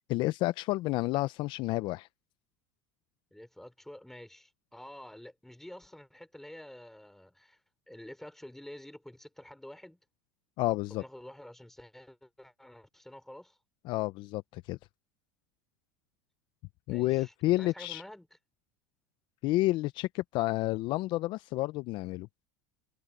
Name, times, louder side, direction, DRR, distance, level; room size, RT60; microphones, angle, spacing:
voice 1, 0.1-2.1 10.6-11.0 13.9-14.8 16.9-18.0 19.4-22.3, left 18 dB, 55° left, 0.7 m, -30 dB
voice 2, 3.3-7.6 7.9-10.0 10.9-13.6 16.9-18.3, left 1 dB, 5° left, 4.6 m, -49 dB
supercardioid pair, 100°, 10 cm